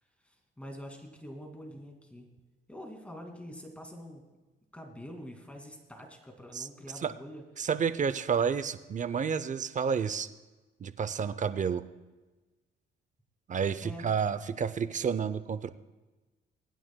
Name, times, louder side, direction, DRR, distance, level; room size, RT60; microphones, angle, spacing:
voice 1, 0.2-2.3 2.7-4.2 4.7-7.4 13.8-14.1, equal, 5° left, 2 dB, 2.3 m, -45 dB
voice 2, 7.6-10.3 10.8-11.8 13.5-15.7, right 6 dB, 40° right, 13 dB, 0.6 m, -30 dB
23.0 x 9.2 x 2.2 m, 1.2 s
cardioid pair, 90°, 20 cm